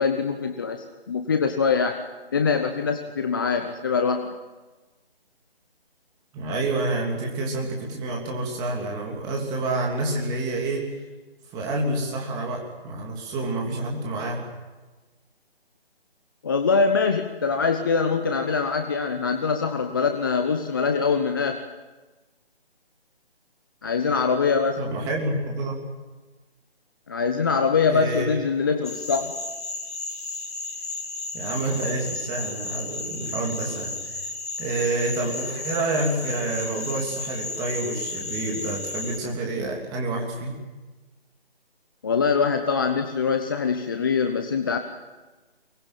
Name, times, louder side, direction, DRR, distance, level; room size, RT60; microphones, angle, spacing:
voice 1, 0.0-2.0 2.3-4.3 16.4-21.6 23.8-24.8 27.1-29.3 42.0-44.8, left 5 dB, 20° left, 6 dB, 0.8 m, -23 dB
voice 2, 6.3-10.9 11.5-14.4 24.8-25.8 27.9-28.3 31.3-34.2 34.6-40.6, right 2 dB, 10° right, 0 dB, 3.1 m, -28 dB
sound 1, 28.8-39.2, left 3 dB, 70° left, 5.5 m, -33 dB
23.5 x 20.5 x 9.2 m, 1.2 s
figure-of-eight pair, 155°, 32 cm